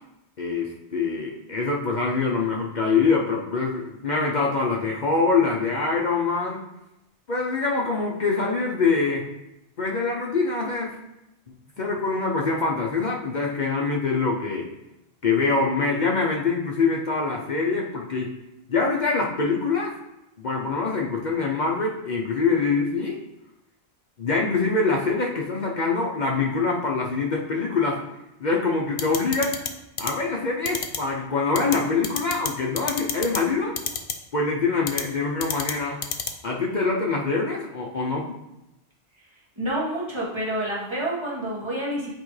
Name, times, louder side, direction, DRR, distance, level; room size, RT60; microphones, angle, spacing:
voice 1, 0.4-6.6 7.3-9.3 9.8-11.0 11.5-14.7 15.2-18.3 18.7-20.0 20.4-23.2 24.2-28.0 28.4-29.6 30.0-33.7 34.3-36.0 36.4-38.4, left 4 dB, 50° left, -1 dB, 0.7 m, -24 dB
sound 1, 29.0-29.7 30.0-30.1 30.7-31.0 31.6-31.8 32.0-32.5 32.8-33.4 33.8-34.1 34.9-35.0 35.4-35.7 36.0-36.3, left 8 dB, 80° left, 0.9 m, -27 dB
voice 2, 39.6-42.1, right 1 dB, 25° right, -5 dB, 1.7 m, -28 dB
8.4 x 4.3 x 3.2 m, 0.91 s
omnidirectional pair, 1.1 m